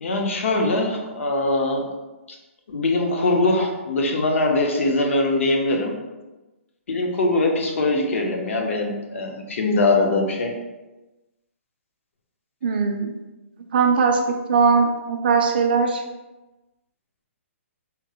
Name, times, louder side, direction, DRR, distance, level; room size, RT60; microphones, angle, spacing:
voice 1, 0.0-1.8 2.7-5.9 6.9-10.5, left 2 dB, 65° left, 2 dB, 0.6 m, -22 dB
voice 2, 12.6-13.1 13.7-16.0, right 5 dB, 45° right, 4 dB, 0.3 m, -20 dB
3.5 x 2.0 x 2.7 m, 1.1 s
hypercardioid pair, 165°, 7 cm